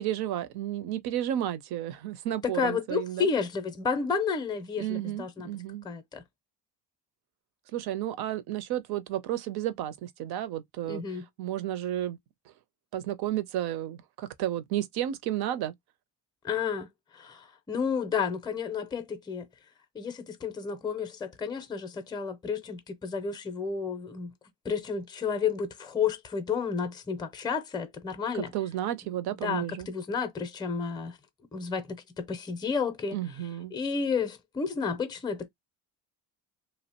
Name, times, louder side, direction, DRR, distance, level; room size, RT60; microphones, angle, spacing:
voice 1, 0.0-3.3 4.8-5.8 7.7-11.0 11.4-12.2 12.9-15.7 28.3-29.9 33.1-33.7, right 12 dB, 70° right, 0.6 m, -32 dB
voice 2, 2.4-5.5 5.8-6.2 10.9-11.2 16.4-16.9 17.1-19.5 19.9-24.3 24.6-28.5 29.4-31.2 31.5-33.2 33.7-35.5, left 6 dB, 10° left, 0.5 m, -31 dB
2.8 x 2.1 x 2.7 m
cardioid pair, 100°, 40 cm